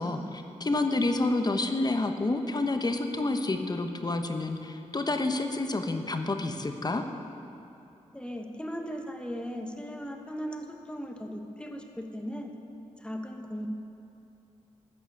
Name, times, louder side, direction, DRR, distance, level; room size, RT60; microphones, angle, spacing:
voice 1, 0.0-7.0, left 2 dB, 35° left, 6 dB, 1.1 m, -29 dB
voice 2, 8.1-12.5 13.0-13.7, equal, 10° left, 3 dB, 1.4 m, -38 dB
13.5 x 6.1 x 8.3 m, 2.9 s
cardioid pair, 60°, 12 cm